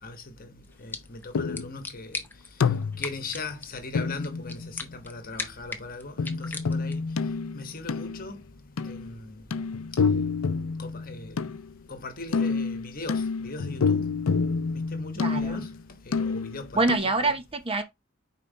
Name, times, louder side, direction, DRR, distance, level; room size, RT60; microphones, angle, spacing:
voice 1, 0.0-2.2 2.5-2.7 3.0-7.1 7.5-8.4 8.8-9.5 10.8-11.4 11.9-14.1 14.7-15.7 16.0-17.4, left 3 dB, 45° left, 1.2 m, -39 dB
sound 1, 0.6-7.1, left 3 dB, 10° left, 0.7 m, -41 dB
sound 2, 1.3-1.8 2.6-3.3 3.9-5.0 6.2-8.2 8.8-9.1 9.5-11.7 12.3-15.8 16.1-16.6 16.9-17.0, left 5 dB, 90° left, 0.5 m, -28 dB
voice 2, 15.2-15.7 16.7-17.8, right 2 dB, 25° right, 0.8 m, -26 dB
5.4 x 4.6 x 4.0 m
head